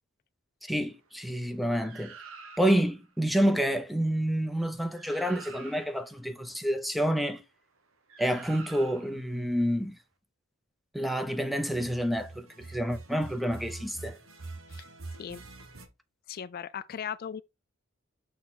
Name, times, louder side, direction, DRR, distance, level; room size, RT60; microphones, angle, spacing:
voice 1, 0.6-2.1 2.6-7.4 8.2-10.0 10.9-14.2, equal, ahead, 0.7 m, -28 dB
sound 1, 1.8-3.0 4.6-4.7 5.0-6.1 8.1-9.3 11.6-15.9, right 3 dB, 75° right, 1.3 m, -46 dB
voice 2, 16.3-17.4, left 8 dB, 45° left, 0.3 m, -37 dB
6.5 x 4.3 x 4.0 m
head